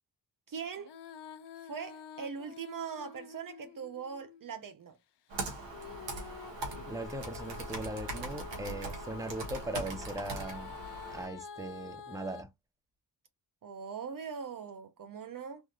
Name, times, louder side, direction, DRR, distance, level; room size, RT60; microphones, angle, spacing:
voice 1, 0.5-0.9 1.6-5.0 8.5-8.8 13.6-15.6, right 6 dB, 50° right, 0.6 m, -41 dB
Female singing, 0.8-4.5 5.7-12.4, left 8 dB, 70° left, 0.6 m, -49 dB
Computer keyboard, 5.3-11.3, right 2 dB, 85° right, 1.2 m, -40 dB
voice 2, 6.9-10.8 11.1-12.5, right 1 dB, 10° right, 0.8 m, -39 dB
3.5 x 2.6 x 2.4 m
cardioid pair, 50°, 42 cm